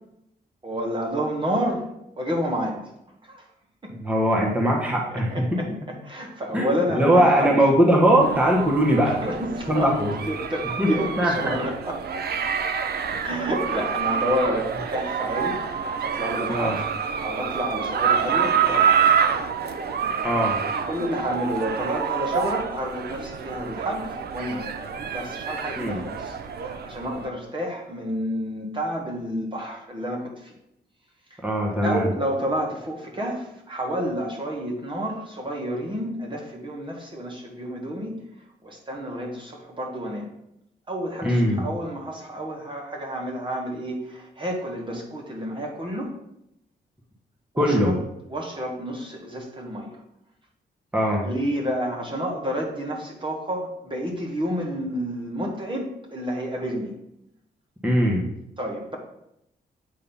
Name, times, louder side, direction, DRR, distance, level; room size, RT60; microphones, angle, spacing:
voice 1, 0.6-1.9 2.2-2.9 3.3-3.4 3.8-4.0 4.9-7.6 9.0-9.9 10.3-12.0 13.0-15.6 16.0-16.7 17.2-19.1 20.9-24.7 25.1-30.5 31.8-38.2 38.6-40.3 40.9-46.1 47.5-48.0 48.3-49.9 51.2-56.9 58.6-59.0, equal, 30° right, 0 dB, 1.3 m, -30 dB
voice 2, 3.9-5.6 6.5-9.2 9.7-10.1 10.8-10.9 11.2-11.5 16.5-16.8 20.2-20.6 25.8-26.0 31.4-32.1 41.2-41.6 47.6-47.9 50.9-51.3 57.8-58.2, equal, 5° right, -2 dB, 1.3 m, -20 dB
sound 1, 8.2-27.3, right 7 dB, 65° right, 0.6 m, -27 dB
8.5 x 2.9 x 5.5 m, 0.81 s
cardioid pair, 110°, 18 cm